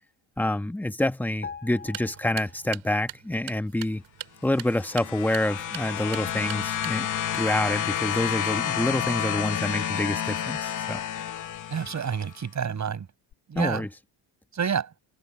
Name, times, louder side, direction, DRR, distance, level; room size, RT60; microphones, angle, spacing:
voice 1, 0.4-4.0 4.4-7.1 7.3-11.0 13.5-13.9, left 1 dB, 5° left, 1.2 m, -27 dB
sound 1, 1.4-3.1 3.3-3.5, left 6 dB, 20° left, 5.9 m, -43 dB
sound 2, 1.8-7.3, right 14 dB, 75° right, 6.6 m, -43 dB
sound 3, 4.5-12.3 13.3-13.4, left 10 dB, 40° left, 1.0 m, -30 dB
voice 2, 11.7-13.1 13.5-13.8 14.5-14.9, right 7 dB, 35° right, 6.5 m, -28 dB
cardioid pair, 150°, 49 cm